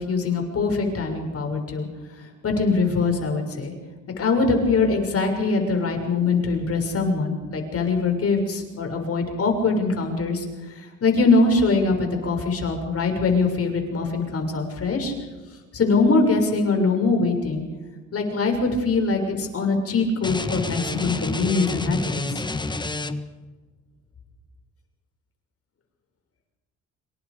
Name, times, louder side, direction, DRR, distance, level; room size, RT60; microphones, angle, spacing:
voice 1, 0.0-1.9 2.4-3.7 4.2-15.1 15.7-17.6 18.1-22.4, left 3 dB, 50° left, 3 dB, 6.9 m, -22 dB
sound 1, 20.2-23.4, left 2 dB, 15° left, 1.5 m, -29 dB
27.0 x 24.5 x 5.2 m, 1.3 s
cardioid pair, 90°, 30 cm